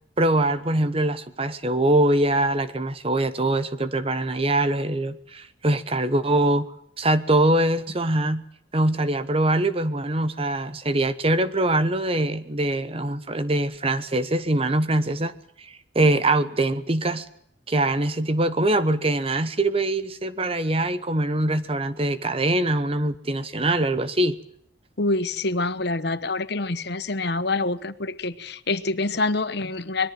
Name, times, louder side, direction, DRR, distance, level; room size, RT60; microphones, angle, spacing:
voice 1, 0.2-6.7 7.0-8.4 8.7-15.3 15.6-17.3 17.7-24.4, right 1 dB, 30° right, 1.1 m, -23 dB
voice 2, 25.0-30.1, left 3 dB, 60° left, 1.1 m, -26 dB
24.5 x 21.5 x 7.7 m
head